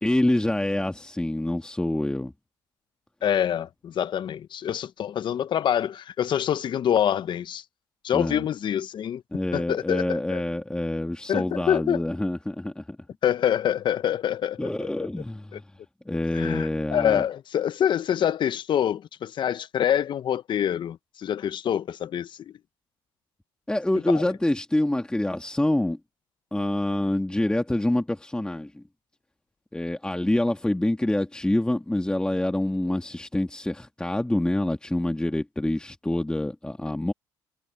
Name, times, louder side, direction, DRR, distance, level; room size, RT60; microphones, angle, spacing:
voice 1, 0.0-2.3 8.1-8.5 9.3-13.0 14.6-15.6 16.1-17.3 23.7-26.0 26.5-28.8 29.7-37.1, left 1 dB, 10° left, 2.0 m, -26 dB
voice 2, 3.2-7.6 8.0-9.2 9.5-10.4 11.3-12.0 13.2-14.7 15.5-15.6 16.3-22.5 24.1-24.2, left 9 dB, 55° left, 1.1 m, -26 dB
supercardioid pair, 65°, 10 cm